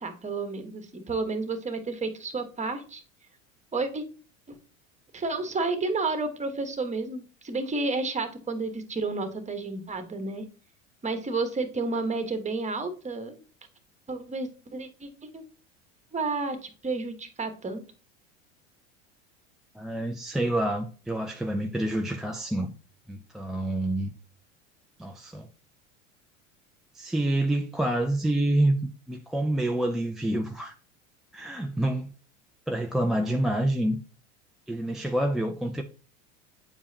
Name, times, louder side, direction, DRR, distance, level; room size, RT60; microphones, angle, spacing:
voice 1, 0.0-3.0 3.7-4.0 4.5-4.6 5.1-10.4 11.0-13.4 14.1-15.4 16.1-17.8, right 3 dB, 20° right, 1.3 m, -31 dB
voice 2, 19.7-22.7 23.1-24.1 25.0-25.5 26.9-30.7 31.3-32.1 32.7-34.0 34.7-35.8, right 1 dB, ahead, 0.3 m, -27 dB
8.7 x 4.7 x 2.8 m
hypercardioid pair, 90°, 38 cm